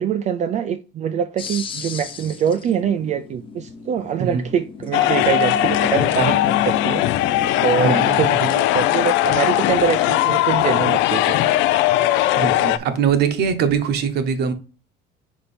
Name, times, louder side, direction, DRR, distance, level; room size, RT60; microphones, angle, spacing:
voice 1, 0.0-7.0 7.6-11.5, right 8 dB, 35° right, 0.4 m, -24 dB
sound 1, 1.4-8.2, left 6 dB, 25° left, 0.8 m, -32 dB
sound 2, 4.9-12.8, left 14 dB, 70° left, 0.5 m, -19 dB
voice 2, 7.8-8.2 12.4-14.5, right 7 dB, 55° right, 1.0 m, -22 dB
5.2 x 4.5 x 4.2 m
cardioid pair, 155°, 20 cm